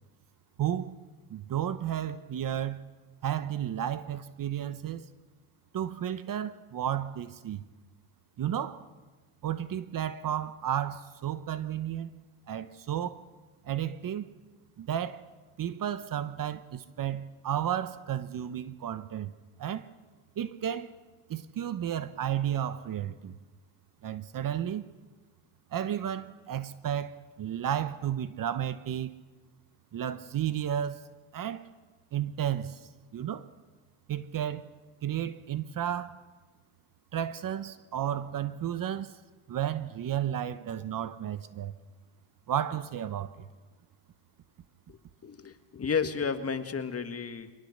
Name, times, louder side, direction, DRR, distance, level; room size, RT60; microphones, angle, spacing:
voice 1, 0.6-1.0 1.3-2.8 3.2-5.1 5.7-7.6 8.4-8.8 9.4-12.1 12.5-13.2 13.6-14.3 14.8-15.2 15.6-19.3 19.6-19.9 20.4-20.9 21.3-23.4 24.0-24.9 25.7-29.1 29.9-31.0 31.3-31.6 32.1-32.8 33.1-33.5 34.1-34.6 35.0-36.2 37.1-39.2 39.5-41.7 42.5-43.5, right 10 dB, 45° right, 1.1 m, -32 dB
voice 2, 44.9-47.5, left 6 dB, 30° left, 1.8 m, -32 dB
24.0 x 19.0 x 6.7 m
supercardioid pair, 85°, 46 cm